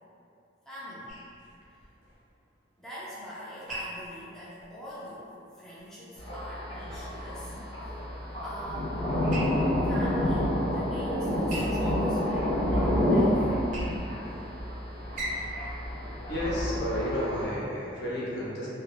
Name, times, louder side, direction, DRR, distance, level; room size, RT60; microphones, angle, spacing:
voice 1, 0.7-1.1 2.8-5.3 5.6-8.0 8.4-9.1 9.8-13.4, equal, 5° left, -10 dB, 0.3 m, -43 dB
sound 1, 1.1-17.1, right 1 dB, 45° right, 0.5 m, -44 dB
Thunder, 6.2-17.5, left 1 dB, 30° left, 0.7 m, -29 dB
voice 2, 16.3-18.7, left 1 dB, 60° left, -7 dB, 0.7 m, -31 dB
2.3 x 2.0 x 3.1 m, 2.6 s
head